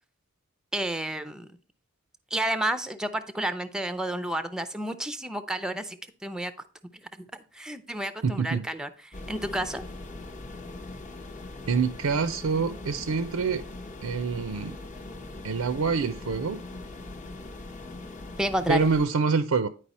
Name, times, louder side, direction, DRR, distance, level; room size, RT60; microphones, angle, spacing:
voice 1, 0.7-1.5 2.3-6.0 6.2-6.5 7.5-8.9 9.3-9.8 18.4-18.9, right 1 dB, 5° right, 0.5 m, -30 dB
voice 2, 8.2-8.7 11.7-13.6 14.0-14.8 15.4-16.6 18.7-19.7, right 5 dB, 80° right, 0.5 m, -26 dB
sound 1, 9.1-19.1, left 2 dB, 35° left, 0.8 m, -41 dB
9.9 x 4.9 x 4.1 m
head